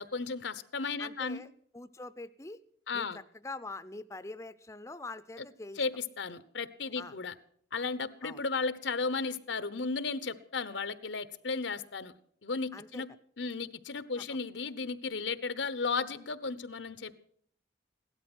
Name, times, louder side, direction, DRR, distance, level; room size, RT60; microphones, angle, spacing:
voice 1, 0.0-1.4 2.9-3.2 5.8-5.9 6.2-7.3 7.7-12.1 12.4-13.1 13.4-17.1, left 4 dB, 85° left, 14 dB, 1.0 m, -34 dB
voice 2, 1.0-1.5 1.7-2.6 2.9-5.8 7.0-7.2 8.2-8.4 12.7-13.0 14.2-14.4, left 2 dB, 15° left, 13 dB, 0.5 m, -44 dB
17.0 x 12.5 x 6.2 m, 0.62 s
head